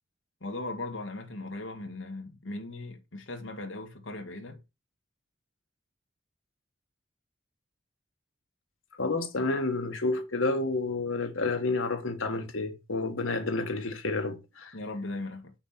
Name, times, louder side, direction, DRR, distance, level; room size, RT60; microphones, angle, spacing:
voice 1, 0.4-4.6 14.7-15.5, left 2 dB, 70° left, 1.6 m, -38 dB
voice 2, 9.0-14.7, left 3 dB, 85° left, 1.6 m, -30 dB
7.1 x 5.9 x 4.2 m
head